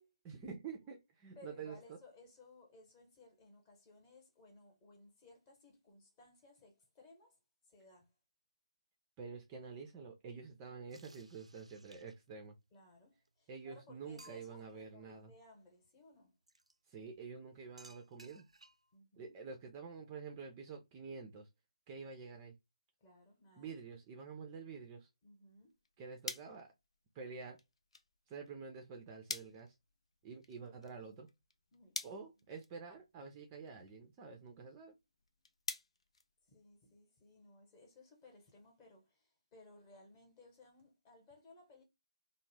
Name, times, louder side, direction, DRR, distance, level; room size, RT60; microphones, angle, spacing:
voice 1, 0.2-1.8 9.2-12.5 13.5-15.3 16.9-18.5 19.2-21.5 21.9-22.5 23.6-25.1 26.0-26.7 27.1-27.6 28.3-29.7 30.2-31.3 32.0-34.9, right 5 dB, 20° right, 0.4 m, -48 dB
voice 2, 1.3-7.4 7.6-8.1 12.7-16.4 18.9-19.3 23.0-23.8 25.2-25.8 31.7-32.3 36.5-41.8, left 2 dB, 20° left, 0.9 m, -61 dB
sound 1, 10.9-12.4 13.3-13.4 13.7-13.8 14.2-14.7 16.5-16.7 17.8-18.9, right 2 dB, 85° right, 0.4 m, -61 dB
sound 2, 25.5-37.0, left 4 dB, 65° left, 0.4 m, -50 dB
2.3 x 2.1 x 3.1 m
figure-of-eight pair, 150°, 3 cm